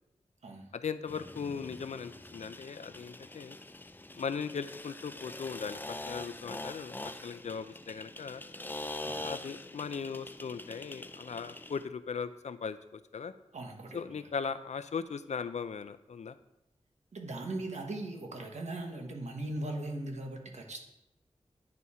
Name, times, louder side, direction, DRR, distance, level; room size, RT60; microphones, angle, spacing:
voice 1, 0.7-3.6 4.2-8.4 9.2-13.3 13.9-16.4, left 6 dB, 75° left, 12 dB, 0.4 m, -38 dB
sound 1, 1.1-11.9, left 2 dB, 15° left, 0.4 m, -44 dB
voice 2, 13.5-14.3 17.1-20.8, right 2 dB, 75° right, 2 dB, 1.3 m, -39 dB
9.4 x 4.3 x 4.8 m, 0.87 s
wide cardioid pair, 95°, 12 cm